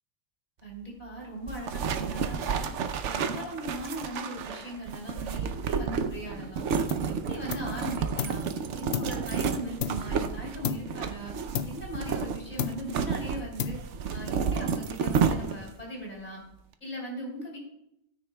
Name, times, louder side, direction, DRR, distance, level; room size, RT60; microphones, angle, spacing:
voice 1, 0.6-2.7 3.0-6.6 7.1-8.4 8.7-11.3 11.6-13.8 14.1-16.4 16.8-17.6, right 1 dB, 35° left, -2 dB, 3.9 m, -39 dB
sound 1, 1.5-15.8, right 6 dB, 80° right, 1.0 m, -31 dB
sound 2, 6.9-7.2 7.5-8.5 8.9-10.3 10.6-11.1 11.5-12.3 12.6-13.1 13.6-14.1, left 8 dB, 65° left, 0.8 m, -34 dB
17.5 x 9.6 x 2.3 m, 0.78 s
omnidirectional pair, 1.2 m